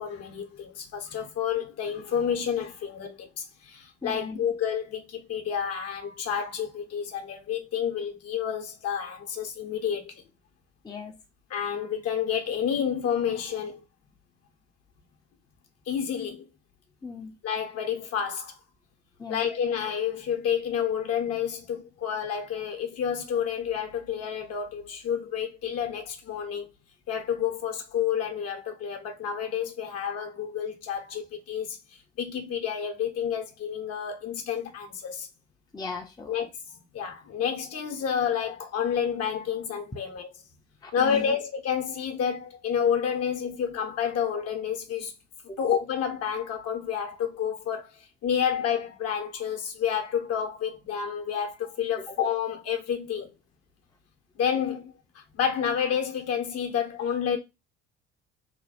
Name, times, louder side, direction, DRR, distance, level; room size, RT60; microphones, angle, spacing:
voice 1, 0.0-10.2 11.5-13.8 15.9-16.4 17.4-18.5 19.3-26.7 27.1-31.8 32.2-35.3 36.3-36.5 36.9-40.3 40.9-45.1 45.6-53.3 54.4-57.4, left 8 dB, 45° left, 1.0 m, -29 dB
voice 2, 4.0-4.5 10.8-11.2 17.0-17.4 19.2-19.4 35.7-36.3 40.8-41.4 45.5-45.6, left 4 dB, 10° left, 0.7 m, -38 dB
3.1 x 2.3 x 4.2 m
hypercardioid pair, 60°, 33 cm